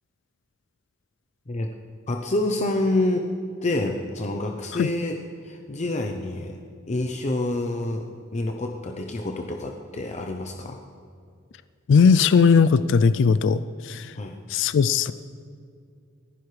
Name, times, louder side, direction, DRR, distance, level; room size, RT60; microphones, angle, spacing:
voice 1, 2.1-3.3 3.6-5.2 5.4-6.6 6.9-10.8 14.2-14.4, left 2 dB, 35° left, 3 dB, 0.7 m, -27 dB
voice 2, 11.9-14.1 14.5-15.1, left 5 dB, 65° left, 14 dB, 0.3 m, -18 dB
28.0 x 10.5 x 3.3 m, 2.3 s
head